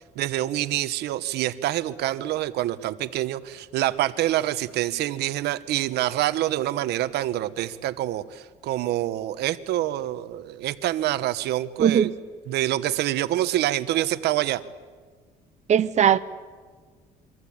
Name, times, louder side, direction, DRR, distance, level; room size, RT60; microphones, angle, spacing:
voice 1, 0.2-12.1 12.5-14.6, right 14 dB, 80° right, 1.1 m, -26 dB
voice 2, 11.8-12.1 15.7-16.2, right 9 dB, 45° right, 0.9 m, -18 dB
27.0 x 24.5 x 8.7 m
cardioid pair, 110°, 17 cm